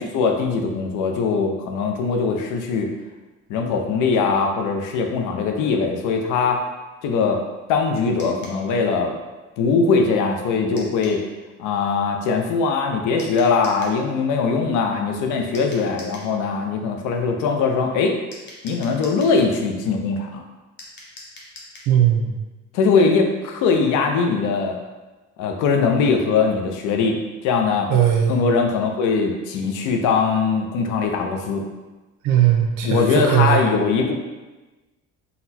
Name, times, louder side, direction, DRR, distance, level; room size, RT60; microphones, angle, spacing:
voice 1, 0.0-2.9 3.5-6.6 7.0-7.4 7.7-9.1 9.6-11.2 11.6-18.2 18.6-20.4 22.7-24.8 25.4-27.2 27.4-27.9 28.3-31.6 32.8-34.2, left 5 dB, 85° left, 3 dB, 0.7 m, -21 dB
sound 1, 8.2-8.6 10.8-11.2 13.2-14.0 15.5-16.3 18.3-19.4 20.8-21.9, left 2 dB, 35° left, 0.9 m, -42 dB
voice 2, 21.9-22.3 27.9-28.3 32.2-33.6, right 10 dB, 85° right, 0 dB, 0.9 m, -18 dB
4.0 x 2.3 x 4.1 m, 1.2 s
cardioid pair, 155°, 30 cm